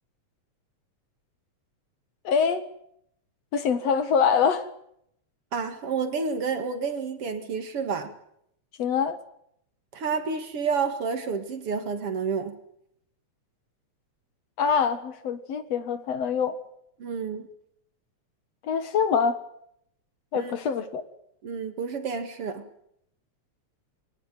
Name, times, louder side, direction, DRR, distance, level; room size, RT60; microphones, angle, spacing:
voice 1, 2.2-2.6 3.5-4.7 8.8-9.2 14.6-16.6 18.6-19.4 20.3-21.0, left 6 dB, 60° left, 2.6 m, -24 dB
voice 2, 5.5-8.1 9.9-12.6 17.0-17.5 20.3-20.5 21.4-22.7, right 5 dB, 55° right, 2.7 m, -30 dB
22.5 x 19.5 x 9.2 m
omnidirectional pair, 3.3 m